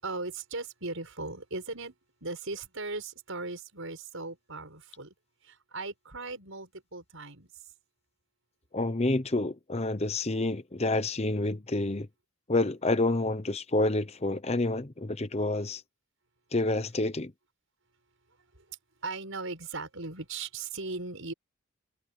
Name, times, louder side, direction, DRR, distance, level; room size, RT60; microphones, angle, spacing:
voice 1, 0.0-1.9 2.2-5.1 5.4-7.5 18.6-18.7 19.0-21.3, right 3 dB, 65° right, 6.2 m, -38 dB
voice 2, 8.7-12.1 12.5-15.8 16.5-17.3, left 2 dB, 30° left, 0.8 m, -28 dB
head